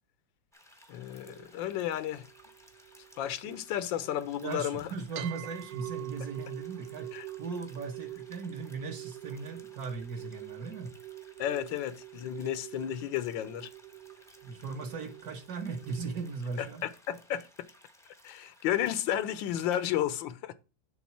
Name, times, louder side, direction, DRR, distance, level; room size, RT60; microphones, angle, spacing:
sound 1, 0.5-20.0, left 1 dB, 5° left, 0.6 m, -59 dB
voice 1, 0.9-2.3 3.2-4.9 7.1-7.3 11.4-13.7 16.6-17.5 18.2-20.5, left 11 dB, 80° left, 1.3 m, -32 dB
sound 2, 1.3-4.6 5.2-16.2, right 16 dB, 70° right, 1.2 m, -46 dB
voice 2, 4.4-7.1 7.4-10.9 14.4-16.8, right 4 dB, 55° right, 1.4 m, -38 dB
7.3 x 3.7 x 5.7 m
omnidirectional pair, 2.1 m